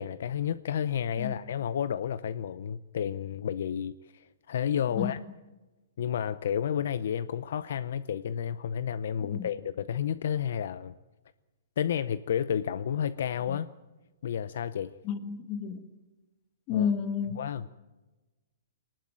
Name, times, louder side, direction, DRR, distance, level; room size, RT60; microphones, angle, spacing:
voice 1, 0.0-5.2 6.0-10.9 11.8-13.7 14.2-14.9 16.7-16.9 17.4-17.7, left 9 dB, 55° left, 0.7 m, -31 dB
voice 2, 15.0-15.9 16.7-17.5, left 7 dB, 25° left, 1.7 m, -31 dB
24.5 x 19.5 x 8.9 m
hypercardioid pair, 175°, 0 cm